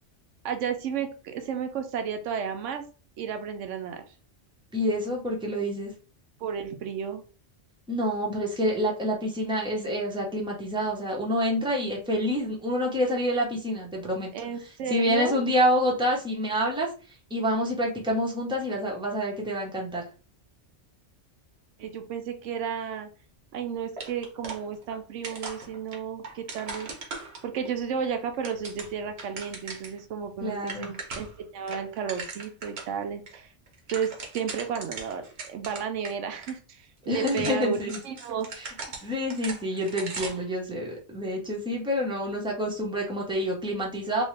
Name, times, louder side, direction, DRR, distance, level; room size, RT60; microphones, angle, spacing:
voice 1, 0.4-2.8 3.2-4.0 6.4-7.2 14.3-15.4 21.8-23.1 23.5-26.9 27.4-33.5 33.9-38.5, right 7 dB, 85° right, 6 dB, 1.0 m, -33 dB
voice 2, 4.7-5.9 7.9-14.3 14.9-16.9 17.3-20.0 30.4-30.9 37.1-38.0 38.6-38.7 39.0-44.2, equal, 5° right, -2 dB, 0.8 m, -27 dB
sound 1, 24.0-25.0 25.2-27.7 28.2-30.0 30.3-30.4 30.6-31.4 31.7-32.9 33.3-33.4 33.7-36.1 36.4-36.5 37.1-40.5, right 4 dB, 60° right, 1.1 m, -39 dB
3.1 x 2.7 x 3.2 m, 0.36 s
omnidirectional pair, 1.2 m